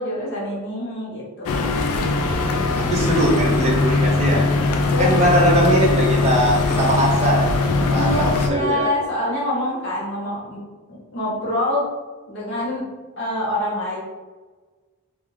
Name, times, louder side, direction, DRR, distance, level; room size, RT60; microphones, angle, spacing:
voice 1, 0.0-1.8 4.9-5.6 7.9-10.6 10.9-11.9 12.3-12.9 13.2-14.0, left 1 dB, 50° left, -6 dB, 0.9 m, -26 dB
sound 1, 1.5-8.5, left 3 dB, 80° left, 0.3 m, -20 dB
voice 2, 2.8-4.4 5.0-8.9, right 1 dB, 30° right, -2 dB, 0.4 m, -21 dB
2.4 x 2.3 x 3.2 m, 1.3 s
head